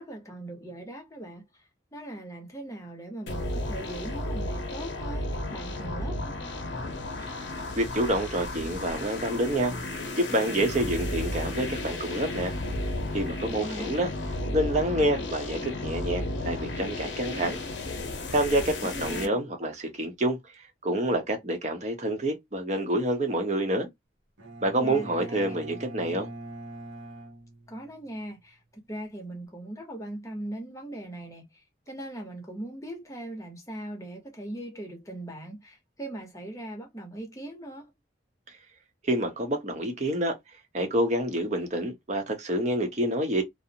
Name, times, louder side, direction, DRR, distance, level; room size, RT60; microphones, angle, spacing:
voice 1, 0.0-1.4 1.9-6.6 13.5-14.0 18.6-19.4 24.8-25.6 27.7-28.6 28.9-31.4 31.9-37.9, right 1 dB, 15° left, 0.7 m, -40 dB
sound 1, 3.3-19.3, left 1 dB, 75° left, 0.7 m, -33 dB
voice 2, 7.8-12.5 13.1-14.1 14.5-17.6 18.3-20.4 20.8-23.9 24.6-26.3 39.0-40.4 40.7-43.4, right 1 dB, 35° right, 0.7 m, -27 dB
Bowed string instrument, 24.4-28.2, right 1 dB, 85° right, 0.8 m, -42 dB
2.5 x 2.0 x 2.7 m
head